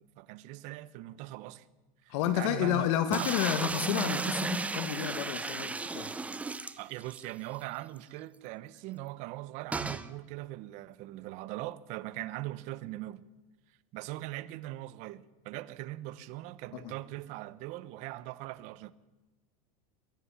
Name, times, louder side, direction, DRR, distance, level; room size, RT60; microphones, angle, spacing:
voice 1, 0.0-1.7 2.0-2.9 3.2-3.3 6.8-13.2 13.9-18.9, right 17 dB, 40° right, 1.0 m, -41 dB
voice 2, 2.1-6.1 16.8-16.9, left 11 dB, 50° left, 1.7 m, -30 dB
sound 1, 3.1-7.3 7.6-7.7 8.0-8.1 9.7-10.1, right 3 dB, 5° right, 0.7 m, -34 dB
23.0 x 14.0 x 10.0 m
supercardioid pair, 165°, 19 cm